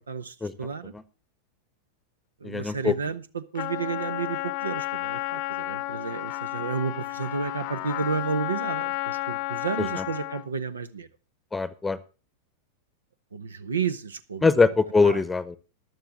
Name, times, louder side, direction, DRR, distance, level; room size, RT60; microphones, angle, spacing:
voice 1, 0.1-0.9 2.4-11.1 13.3-14.5 15.0-15.2, right 5 dB, 70° right, 1.0 m, -31 dB
voice 2, 2.4-2.9 9.8-10.1 11.5-12.0 14.4-15.6, left 4 dB, 10° left, 1.0 m, -23 dB
Trumpet, 3.5-10.5, left 20 dB, 45° left, 0.8 m, -32 dB
14.5 x 11.0 x 3.5 m
figure-of-eight pair, 90°, 0 cm